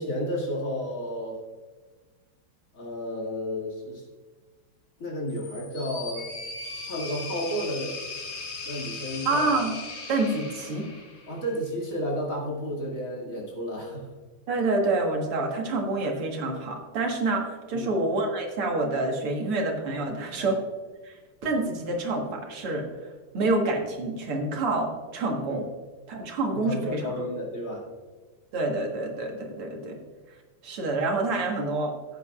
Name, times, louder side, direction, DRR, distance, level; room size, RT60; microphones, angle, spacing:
voice 1, 0.0-1.4 2.7-4.0 5.0-6.3 6.8-7.9 8.6-9.4 11.3-14.1 17.7-17.9 20.4-20.5 25.5-25.6 26.5-27.9 29.7-30.0, equal, 40° left, -3 dB, 2.6 m, -32 dB
sound 1, 5.3-11.5, left 3 dB, 90° left, 2.4 m, -38 dB
voice 2, 9.3-9.7 10.1-10.9 14.5-20.6 21.0-21.1 21.4-22.9 23.3-25.6 26.1-27.1 28.5-30.0 30.6-31.9, right 2 dB, 85° right, 1 dB, 2.5 m, -27 dB
16.0 x 8.3 x 2.4 m, 1.4 s
omnidirectional pair, 2.4 m